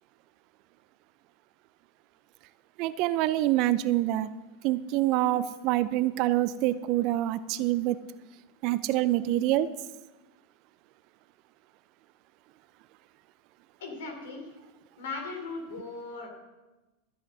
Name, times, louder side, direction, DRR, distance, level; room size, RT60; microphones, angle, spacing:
voice 1, 2.8-4.3 4.6-8.0 8.6-9.7, right 15 dB, 50° right, 16 dB, 0.6 m, -26 dB
voice 2, 13.8-14.5 15.0-16.3, left 3 dB, 70° left, 3 dB, 3.6 m, -38 dB
13.5 x 8.0 x 6.2 m, 1.1 s
figure-of-eight pair, 90°, 0 cm